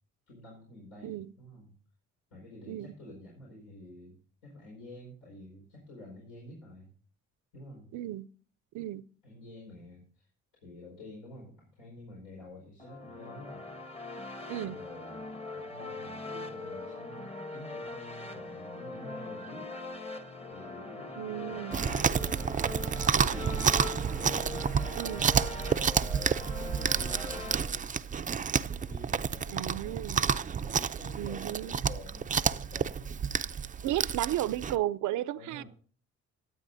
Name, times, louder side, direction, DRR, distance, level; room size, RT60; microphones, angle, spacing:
voice 1, 0.3-1.7 2.3-4.2 4.4-6.9 7.5-7.9 9.2-10.3 10.6-13.6 14.6-19.7 20.5-22.6 22.9-23.9 24.2-25.8 26.6-27.9 28.9-30.0 30.6-33.2 35.3-35.7, left 1 dB, 85° left, 4.9 m, -49 dB
voice 2, 7.9-8.3 8.7-9.0 14.5-14.8 21.2-21.8 25.0-25.3 29.5-30.3 31.2-31.7 33.8-35.6, right 13 dB, 75° right, 0.6 m, -34 dB
sound 1, 12.8-27.6, left 2 dB, 20° left, 1.1 m, -41 dB
Chewing mastication, 21.7-34.8, right 7 dB, 25° right, 0.4 m, -30 dB
20.0 x 8.3 x 2.6 m
cardioid pair, 90°, 30 cm